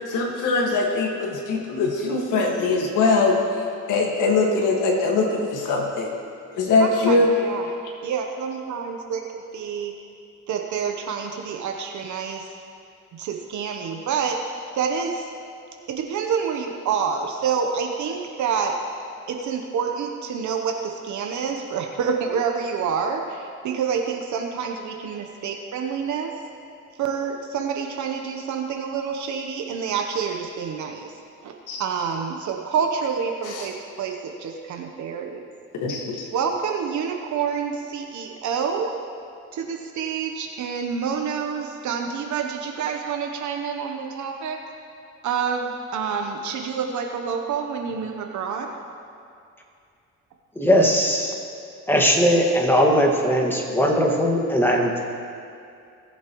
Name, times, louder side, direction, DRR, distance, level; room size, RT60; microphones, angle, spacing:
voice 1, 0.0-6.1 6.5-7.3 31.7-31.8 33.5-33.7 35.8-36.3, left 3 dB, 85° left, -1 dB, 1.8 m, -22 dB
voice 2, 6.8-7.7 8.0-9.9 10.5-12.5 13.1-14.4 14.7-15.3 15.9-18.8 19.3-26.4 27.0-31.1 31.4-31.5 31.8-35.5 36.3-39.0 39.5-44.6 45.2-48.7, right 6 dB, 70° right, 3 dB, 1.0 m, -28 dB
voice 3, 50.6-51.3 51.9-55.0, equal, 5° left, 0 dB, 1.8 m, -19 dB
19.0 x 7.4 x 3.1 m, 2.5 s
cardioid pair, 90°, 30 cm